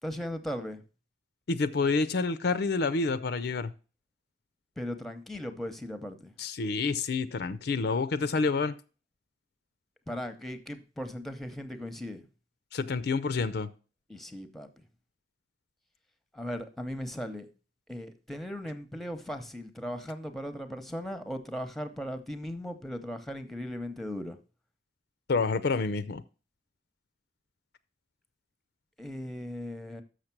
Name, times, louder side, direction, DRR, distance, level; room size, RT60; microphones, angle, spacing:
voice 1, 0.0-0.8 4.8-6.3 10.1-12.2 14.1-14.7 16.3-17.5 17.9-24.4 29.0-30.0, equal, ahead, 9 dB, 0.8 m, -37 dB
voice 2, 1.5-3.7 6.4-8.7 12.7-13.7 25.3-26.2, left 4 dB, 60° left, 13 dB, 0.5 m, -28 dB
6.6 x 6.5 x 5.9 m, 0.35 s
head